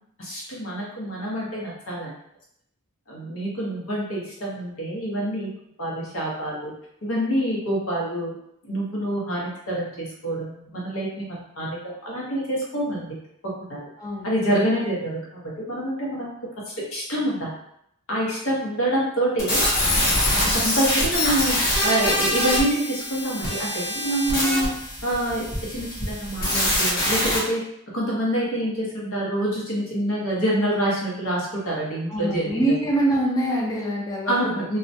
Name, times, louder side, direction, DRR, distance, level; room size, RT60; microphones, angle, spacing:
voice 1, 0.2-2.1 3.1-5.5 5.8-6.7 7.0-8.3 8.6-11.8 12.0-13.2 13.6-13.9 14.2-16.3 16.9-17.5 18.1-19.7 20.5-24.7 25.0-27.6 27.9-32.9 34.3-34.8, right 1 dB, 85° left, -5 dB, 0.9 m, -26 dB
voice 2, 14.0-14.3 32.1-34.5, right 1 dB, 20° left, -4 dB, 0.3 m, -24 dB
sound 1, 19.4-27.4, left 1 dB, 45° left, 0.9 m, -24 dB
2.3 x 2.1 x 2.6 m, 0.75 s
head